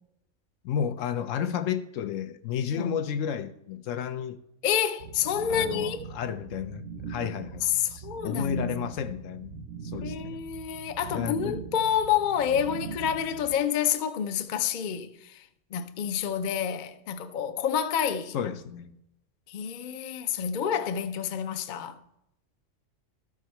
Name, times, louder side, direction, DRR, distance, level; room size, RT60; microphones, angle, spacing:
voice 1, 0.6-4.4 5.5-10.4 11.1-11.6 18.3-18.9, left 8 dB, 75° left, 1.0 m, -32 dB
voice 2, 4.6-6.0 7.6-8.9 10.0-18.3 19.5-22.0, left 8 dB, 55° left, 0.6 m, -28 dB
sound 1, 5.0-13.6, right 6 dB, 70° right, 0.9 m, -40 dB
13.0 x 4.8 x 4.4 m
omnidirectional pair, 1.3 m